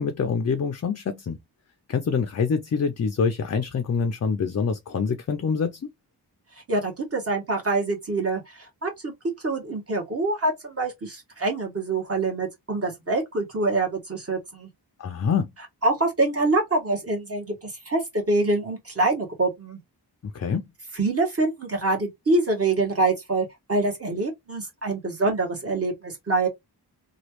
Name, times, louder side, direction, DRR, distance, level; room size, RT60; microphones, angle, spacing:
voice 1, 0.0-1.4 1.9-5.8 15.0-15.5 20.2-20.7, left 5 dB, 40° left, 0.5 m, -25 dB
voice 2, 6.7-9.1 9.4-14.7 15.8-19.8 20.9-26.5, right 2 dB, 35° right, 1.4 m, -25 dB
3.0 x 2.4 x 3.0 m
wide cardioid pair, 100°, 41 cm